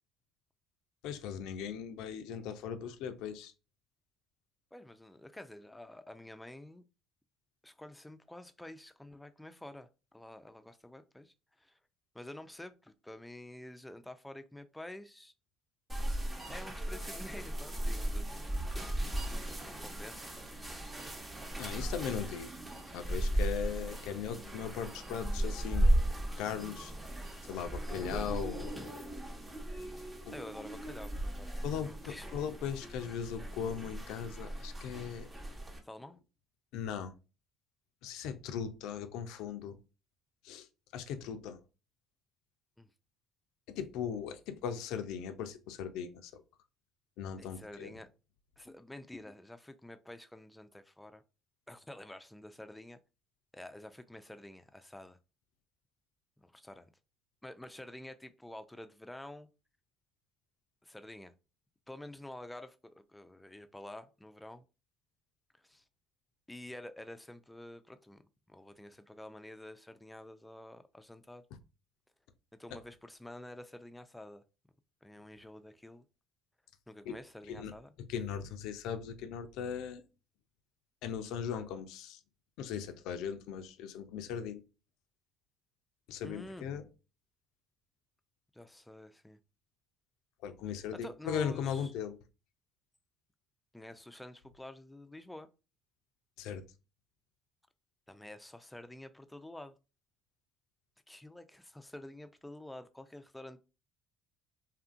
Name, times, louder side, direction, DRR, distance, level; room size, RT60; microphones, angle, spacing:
voice 1, 1.0-3.5 21.6-22.5 22.9-25.9 26.4-26.9 27.5-29.2 30.3-30.4 31.6-35.3 36.7-37.1 38.0-39.8 40.4-40.7 40.9-41.6 43.7-46.4 47.2-47.9 77.1-77.2 77.5-77.7 78.1-80.0 81.0-82.2 82.6-84.6 86.1-86.9 90.4-92.2 96.4-96.6, left 8 dB, 75° left, 0.4 m, -38 dB
voice 2, 4.7-6.8 7.6-11.8 12.1-15.3 16.5-18.4 18.7-19.1 19.6-20.8 30.3-32.7 35.8-36.2 42.8-42.9 47.4-48.1 48.6-51.2 51.7-53.0 53.5-55.2 56.4-56.9 57.4-59.5 60.8-61.3 61.9-64.6 65.6-65.8 66.5-68.2 68.5-71.4 72.6-74.4 75.0-76.0 76.9-77.9 86.2-86.7 88.5-89.4 91.0-91.9 93.7-95.5 98.1-99.8 101.1-103.6, left 1 dB, 5° left, 0.4 m, -49 dB
sound 1, 15.9-35.8, right 1 dB, 20° right, 0.8 m, -36 dB
2.7 x 2.5 x 2.5 m
supercardioid pair, 80°, 0 cm